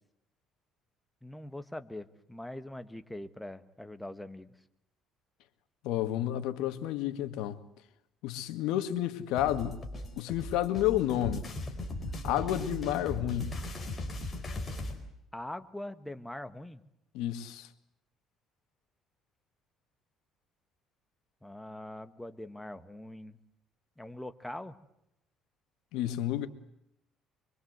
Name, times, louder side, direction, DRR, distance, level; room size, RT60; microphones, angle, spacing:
voice 1, 1.2-4.5 15.3-16.8 21.4-23.4 24.0-24.8, left 1 dB, 5° left, 1.4 m, -42 dB
voice 2, 5.8-7.6 8.2-9.8 10.2-11.5 12.2-13.6 17.1-17.7 25.9-26.5, left 12 dB, 90° left, 1.9 m, -31 dB
sound 1, 9.4-15.0, left 1 dB, 25° left, 4.5 m, -38 dB
25.0 x 23.5 x 8.0 m
cardioid pair, 135°, 0 cm